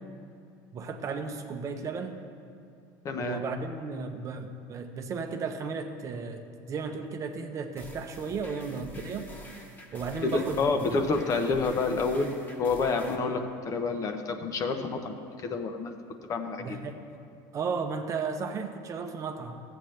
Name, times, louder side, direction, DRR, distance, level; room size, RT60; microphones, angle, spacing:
voice 1, 0.7-2.2 3.2-9.3 9.9-11.0 13.2-13.3 16.6-17.0 17.5-19.6, right 5 dB, 35° right, 5 dB, 0.7 m, -34 dB
voice 2, 3.0-3.4 10.2-15.9 16.3-16.8, left 4 dB, 35° left, 6 dB, 0.7 m, -29 dB
sound 1, 7.8-13.2, left 1 dB, 20° left, 1.2 m, -47 dB
14.5 x 7.8 x 3.2 m, 2.5 s
supercardioid pair, 135°, 10 cm